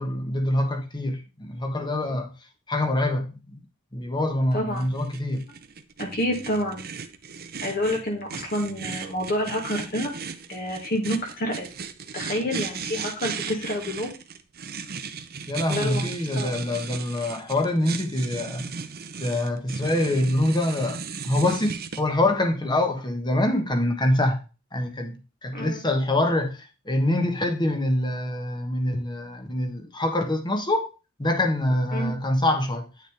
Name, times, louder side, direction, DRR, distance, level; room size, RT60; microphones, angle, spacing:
voice 1, 0.0-2.3 2.7-3.6 3.9-5.4 15.5-18.7 19.2-24.4 24.7-30.9 31.2-32.9, left 1 dB, 20° left, 1.4 m, -25 dB
voice 2, 4.5-4.9 6.0-6.8 7.6-10.1 10.5-11.7 12.1-14.1 15.7-16.0 16.4-16.5 25.5-25.8 31.9-32.1, left 1 dB, 45° left, 2.3 m, -28 dB
sound 1, 4.8-22.0, right 5 dB, 50° right, 0.8 m, -36 dB
9.8 x 6.5 x 3.5 m
head